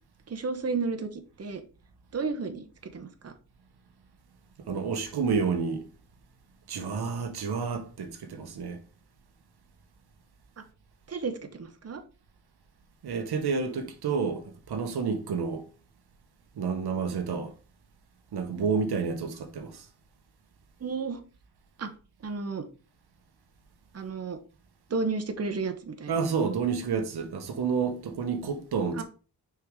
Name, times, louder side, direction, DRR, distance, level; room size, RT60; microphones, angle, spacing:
voice 1, 0.3-1.6 2.1-2.6 2.9-3.3 11.1-12.0 20.8-21.2 21.8-21.9 22.2-22.6 23.9-24.4 24.9-26.1 29.0-29.1, right 4 dB, 40° right, 1.0 m, -32 dB
voice 2, 4.7-5.9 6.7-8.8 13.0-15.6 16.6-17.5 18.3-19.9 26.1-29.0, right 5 dB, 90° right, 1.1 m, -29 dB
6.0 x 4.7 x 3.7 m
wide cardioid pair, 95°, 37 cm